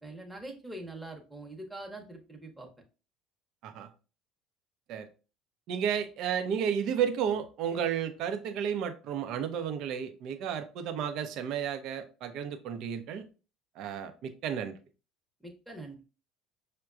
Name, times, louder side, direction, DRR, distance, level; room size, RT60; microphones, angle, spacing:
voice 1, 0.0-2.7 15.4-16.0, right 1 dB, 5° right, 0 dB, 0.9 m, -43 dB
voice 2, 5.7-13.3 13.8-14.7, right 8 dB, 55° right, 7 dB, 0.6 m, -32 dB
6.3 x 2.2 x 2.4 m, 0.33 s
figure-of-eight pair, 60°, 0 cm